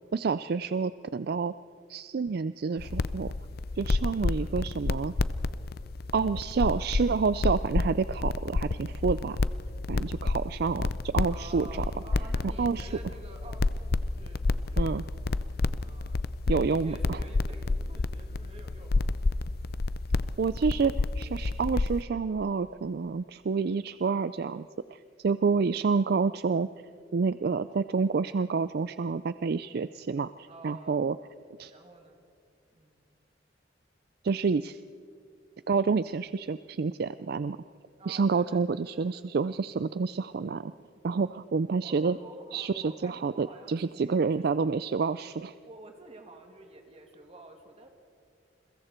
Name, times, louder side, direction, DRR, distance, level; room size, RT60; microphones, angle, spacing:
voice 1, 0.1-1.5 1.9-3.3 3.8-5.1 6.1-9.4 9.9-11.8 12.4-12.9 14.8-15.0 16.5-17.2 20.4-24.7 24.9-26.7 27.1-31.2 31.6-31.7 34.2-34.8 35.7-37.6 38.1-40.7 41.0-42.2 42.5-45.5, right 5 dB, 60° right, 14 dB, 0.4 m, -28 dB
sound 1, 2.8-22.0, left 3 dB, 55° left, 0.5 m, -30 dB
voice 2, 4.1-4.6 11.3-15.1 15.8-19.1 30.5-31.0 31.7-32.2 32.7-33.0 38.0-39.1 40.7-40.9 41.3-41.4 41.8-44.6 45.6-47.9, right 2 dB, 35° right, 3 dB, 2.5 m, -50 dB
29.5 x 22.5 x 4.4 m, 2.4 s
head